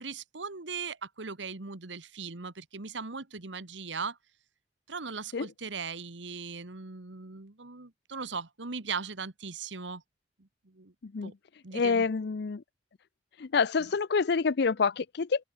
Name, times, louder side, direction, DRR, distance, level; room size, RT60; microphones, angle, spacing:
voice 1, 0.0-4.2 4.9-10.0 10.4-10.9 11.2-11.3 11.6-12.1, right 5 dB, 85° right, 1.6 m, -39 dB
voice 2, 11.7-12.6 13.4-15.4, left 5 dB, 65° left, 0.5 m, -27 dB
open air
head